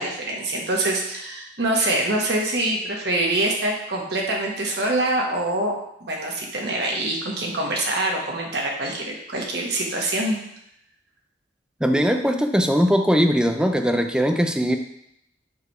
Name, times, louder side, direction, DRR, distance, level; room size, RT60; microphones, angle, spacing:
voice 1, 0.0-5.7 6.0-10.4, right 1 dB, 65° right, -1 dB, 1.4 m, -25 dB
voice 2, 11.8-14.8, equal, 5° right, 5 dB, 0.4 m, -20 dB
6.8 x 3.4 x 4.7 m, 0.76 s
head